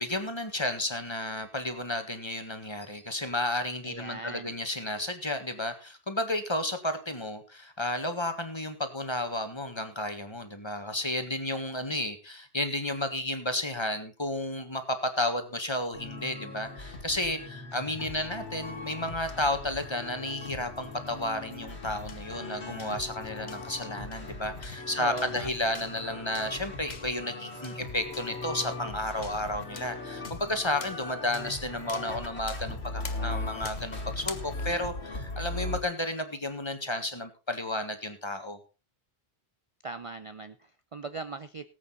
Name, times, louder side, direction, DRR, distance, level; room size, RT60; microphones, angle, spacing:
voice 1, 0.0-38.6, left 1 dB, 25° left, 8 dB, 1.7 m, -32 dB
voice 2, 3.8-4.5 25.0-25.5 39.8-41.7, right 3 dB, 35° right, 11 dB, 0.6 m, -39 dB
sound 1, 15.9-35.8, left 2 dB, 85° left, 2.7 m, -39 dB
sound 2, 20.6-35.4, left 4 dB, 45° left, 1.3 m, -48 dB
18.5 x 8.5 x 4.0 m, 0.31 s
omnidirectional pair, 1.1 m